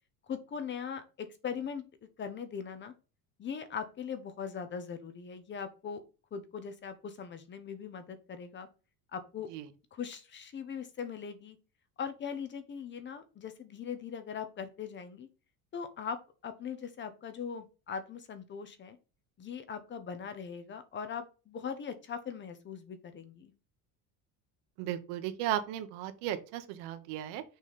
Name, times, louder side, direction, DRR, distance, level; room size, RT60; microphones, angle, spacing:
voice 1, 0.3-1.8 2.2-2.9 3.4-6.0 6.3-8.7 9.1-9.5 9.9-11.6 12.0-15.3 15.7-16.2 16.4-19.0 19.4-23.5, left 7 dB, 25° left, 10 dB, 0.9 m, -40 dB
voice 2, 24.8-27.4, right 12 dB, 80° right, 9 dB, 1.3 m, -35 dB
6.3 x 4.1 x 5.1 m, 0.32 s
cardioid pair, 160°, 42 cm